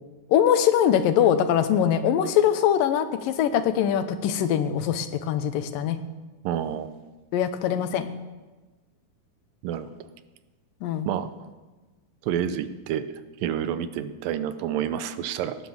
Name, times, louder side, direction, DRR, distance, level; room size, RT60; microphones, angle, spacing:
voice 1, 0.3-6.0 7.3-8.1 10.8-11.1, left 9 dB, 85° left, 10 dB, 2.6 m, -22 dB
voice 2, 6.4-6.9 9.6-9.9 11.1-11.3 12.2-13.1 13.4-15.6, right 9 dB, 85° right, 12 dB, 2.5 m, -28 dB
17.5 x 9.7 x 7.2 m, 1.2 s
omnidirectional pair, 3.9 m